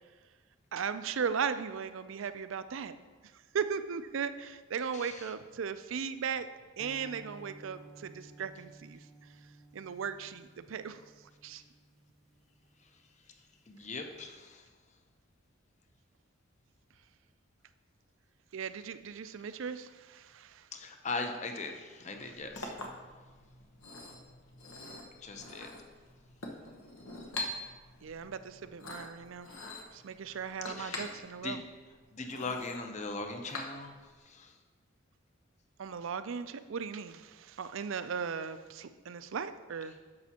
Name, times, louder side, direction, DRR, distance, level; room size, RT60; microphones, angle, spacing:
voice 1, 0.7-2.9 3.5-6.5 6.8-9.0 9.7-11.0 11.4-11.6 18.5-20.7 28.0-29.5 29.9-31.6 35.8-40.0, right 6 dB, 70° right, 12 dB, 0.4 m, -37 dB
voice 2, 4.9-5.3 13.7-14.7 20.7-22.7 25.2-25.7 30.6-31.0 31.4-31.6 32.1-33.9 34.2-34.6, left 3 dB, 35° left, 5 dB, 0.7 m, -39 dB
sound 1, 6.8-13.1, right 2 dB, ahead, 1.0 m, -55 dB
Chink clink, 22.1-34.2, left 2 dB, 85° left, 1.1 m, -45 dB
10.5 x 6.9 x 2.9 m, 1.4 s
head